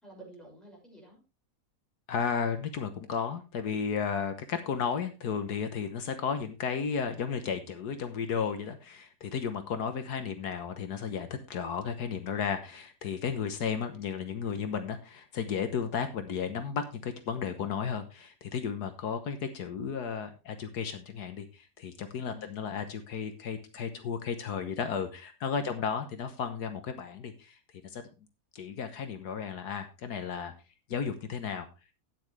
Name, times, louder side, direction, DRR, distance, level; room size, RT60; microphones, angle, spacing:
voice 1, 0.0-1.2 22.2-22.8 25.5-25.9, equal, ahead, -2 dB, 5.9 m, -52 dB
voice 2, 2.1-27.6 27.8-28.0 28.5-30.5 30.9-31.7, left 6 dB, 80° left, 8 dB, 1.7 m, -34 dB
12.0 x 9.6 x 3.3 m, 0.29 s
omnidirectional pair, 1.7 m